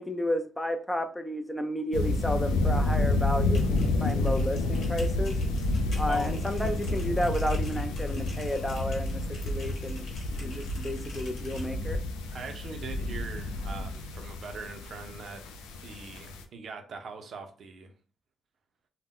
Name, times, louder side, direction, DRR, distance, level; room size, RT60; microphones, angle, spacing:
voice 1, 0.0-5.4 6.0-10.0 10.3-12.0, equal, 10° left, 0.4 m, -32 dB
sound 1, 1.9-16.4, left 2 dB, 90° left, 0.3 m, -30 dB
sound 2, 3.5-11.7, left 2 dB, 65° left, 1.1 m, -49 dB
voice 2, 6.1-6.5 12.3-15.6 15.8-17.9, right 4 dB, 60° right, 0.5 m, -42 dB
2.1 x 2.0 x 3.6 m
supercardioid pair, 55°, 0 cm